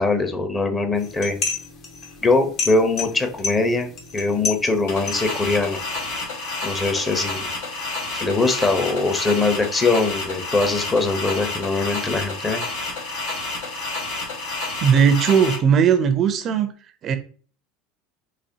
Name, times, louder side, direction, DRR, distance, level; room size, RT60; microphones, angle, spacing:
voice 1, 0.0-1.3 2.2-5.8 6.6-7.5 8.2-12.6, left 3 dB, 20° left, 6 dB, 0.9 m, -22 dB
sound 1, 0.9-6.2, left 5 dB, 50° left, 1.1 m, -32 dB
sound 2, 4.9-15.6, left 2 dB, 80° left, 1.7 m, -30 dB
voice 2, 14.8-16.7 17.0-17.2, right 7 dB, 45° right, 10 dB, 0.5 m, -17 dB
4.0 x 2.9 x 2.8 m, 0.42 s
supercardioid pair, 100°, 0 cm